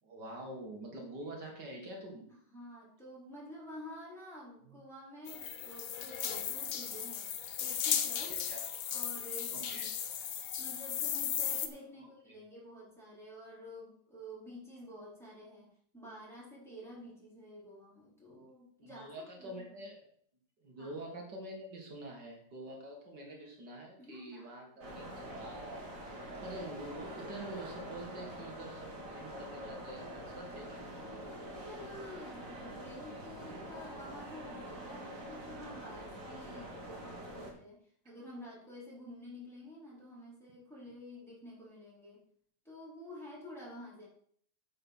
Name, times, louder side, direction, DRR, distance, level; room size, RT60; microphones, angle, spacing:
voice 1, 0.0-2.2 4.7-4.8 8.3-8.6 9.5-9.8 12.0-12.4 18.3-18.5 18.8-20.0 20.6-25.8 26.1-26.2 26.4-30.9, right 1 dB, 75° right, 0 dB, 2.5 m, -46 dB
voice 2, 2.3-7.3 7.6-8.5 8.9-9.9 10.6-19.9 20.8-21.0 24.0-25.0 31.2-37.8 38.0-42.2 42.6-44.1, left 1 dB, ahead, -7 dB, 4.3 m, -50 dB
sound 1, 5.3-11.7, left 8 dB, 60° left, 1.2 m, -36 dB
sound 2, 24.8-37.5, right 1 dB, 50° right, 2.5 m, -45 dB
9.3 x 5.7 x 6.2 m, 0.62 s
omnidirectional pair, 1.9 m